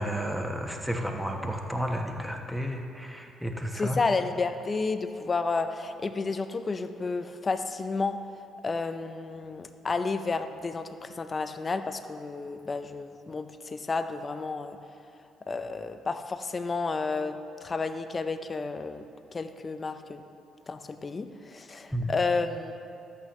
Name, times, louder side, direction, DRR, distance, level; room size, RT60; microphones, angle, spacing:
voice 1, 0.0-4.0 21.9-22.1, equal, ahead, 2 dB, 1.2 m, -32 dB
voice 2, 3.7-8.2 8.6-14.8 15.5-19.0 19.3-20.2 20.7-22.7, left 4 dB, 35° left, 9 dB, 0.6 m, -31 dB
12.5 x 8.6 x 3.2 m, 2.5 s
hypercardioid pair, 50°, 0 cm